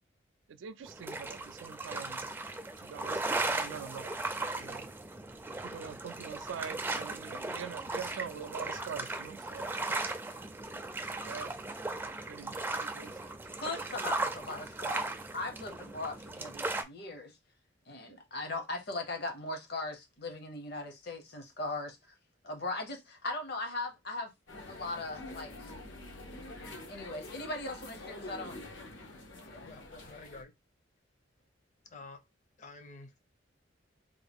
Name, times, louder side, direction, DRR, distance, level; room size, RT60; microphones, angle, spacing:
voice 1, 0.5-2.3 2.8-4.1 4.6-4.9 5.6-10.0 11.2-11.6 12.3-13.2 18.0-18.2, right 7 dB, 85° right, 0.4 m, -44 dB
sound 1, 0.8-16.8, right 2 dB, 10° right, 0.4 m, -37 dB
voice 2, 13.2-17.4 17.9-22.0 22.4-24.3 24.7-25.7 26.6-28.6 29.4-30.0, left 2 dB, 60° left, 0.9 m, -39 dB
sound 2, 24.5-30.4, left 1 dB, 85° left, 1.0 m, -46 dB
voice 3, 29.6-30.5 31.9-32.2 32.6-33.2, left 3 dB, 40° left, 0.6 m, -50 dB
3.7 x 2.2 x 3.5 m
head